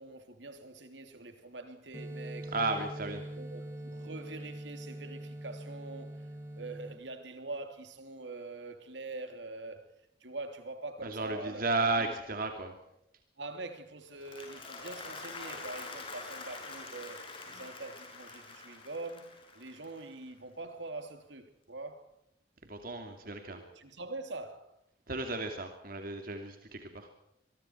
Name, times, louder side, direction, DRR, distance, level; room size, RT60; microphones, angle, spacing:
voice 1, 0.0-2.5 2.8-2.9 3.4-6.2 6.5-9.8 10.2-11.7 12.0-12.1 12.4-12.5 13.4-17.2 17.5-19.3 19.5-22.0 23.2-24.7, right 2 dB, 85° right, 3.1 m, -44 dB
sound 1, 1.9-6.9, right 1 dB, 15° right, 6.8 m, -43 dB
voice 2, 2.5-3.2 11.0-12.7 22.6-23.6 25.1-27.1, right 3 dB, 55° right, 2.8 m, -34 dB
Applause, 14.0-20.4, left 3 dB, 30° left, 7.0 m, -46 dB
25.5 x 23.0 x 4.7 m
head